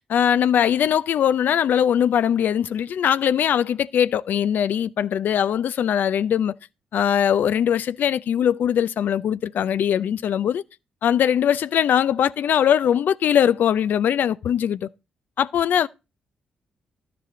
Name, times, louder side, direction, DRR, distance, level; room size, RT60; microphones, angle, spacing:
voice 1, 0.1-6.5 6.9-10.6 11.0-14.9 15.4-15.9, left 9 dB, 65° left, 0.5 m, -21 dB
12.5 x 6.8 x 5.0 m
hypercardioid pair, 45°, 3 cm